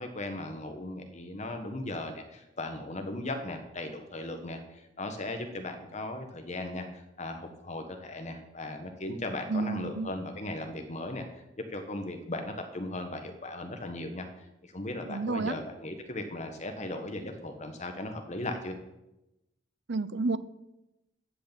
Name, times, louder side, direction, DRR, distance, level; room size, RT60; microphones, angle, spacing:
voice 1, 0.0-11.2 11.7-14.3 14.6-18.8, left 2 dB, 40° left, 5 dB, 1.4 m, -37 dB
voice 2, 9.5-10.1 15.1-15.6 19.9-20.4, right 3 dB, 70° right, 16 dB, 0.8 m, -30 dB
13.5 x 6.6 x 9.0 m, 0.94 s
head